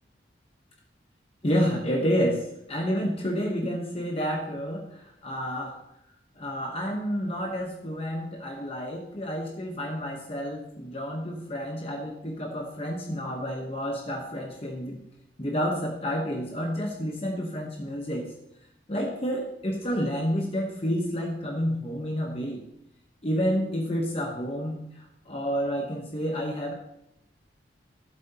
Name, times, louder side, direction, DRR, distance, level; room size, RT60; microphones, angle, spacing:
voice 1, 1.4-5.8 6.4-15.0 15.4-18.3 18.9-22.6 23.2-26.7, equal, 30° left, 0 dB, 0.9 m, -29 dB
12.5 x 7.7 x 2.8 m, 0.81 s
head